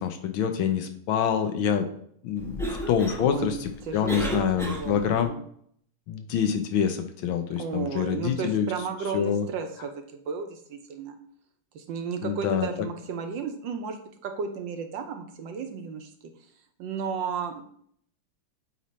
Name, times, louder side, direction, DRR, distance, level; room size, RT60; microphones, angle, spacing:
voice 1, 0.0-1.9 2.2-5.3 6.1-8.7 9.1-9.5 12.2-12.7, left 8 dB, 75° left, 7 dB, 1.5 m, -26 dB
Cough, 2.4-5.3, equal, 5° left, 0.4 m, -34 dB
voice 2, 3.2-5.4 7.6-11.1 11.7-16.1 16.8-17.6, right 6 dB, 70° right, 6 dB, 1.3 m, -34 dB
8.3 x 3.1 x 4.1 m, 0.63 s
omnidirectional pair, 2.3 m